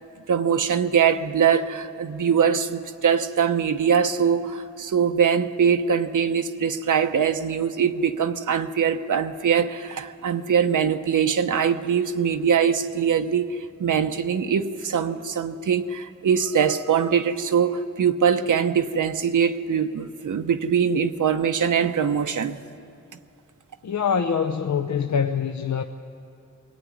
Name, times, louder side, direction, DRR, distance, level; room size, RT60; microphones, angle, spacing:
voice 1, 0.3-22.6, right 7 dB, 85° right, 7 dB, 0.8 m, -22 dB
voice 2, 23.8-25.8, left 7 dB, 70° left, 6 dB, 0.7 m, -24 dB
22.0 x 15.5 x 9.5 m, 2.5 s
wide cardioid pair, 85°, 30 cm